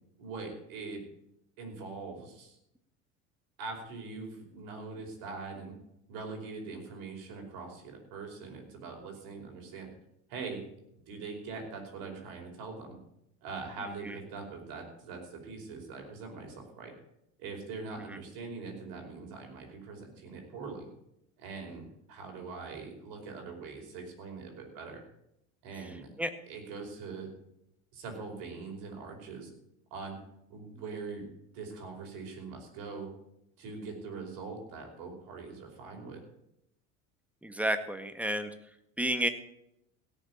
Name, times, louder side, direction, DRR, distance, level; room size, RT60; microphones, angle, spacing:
voice 1, 0.2-1.0 1.6-2.6 3.6-5.7 6.1-9.9 10.3-10.7 11.1-13.0 13.4-16.9 17.4-20.9 21.4-25.0 25.6-26.1 26.5-27.3 27.9-29.5 29.9-30.2 30.5-33.1 33.6-36.2, right 4 dB, 60° right, 2 dB, 5.1 m, -42 dB
voice 2, 37.4-38.5 39.0-39.3, right 1 dB, 5° right, 8 dB, 1.8 m, -30 dB
17.0 x 7.2 x 8.6 m, 0.81 s
hypercardioid pair, 65°, 40 cm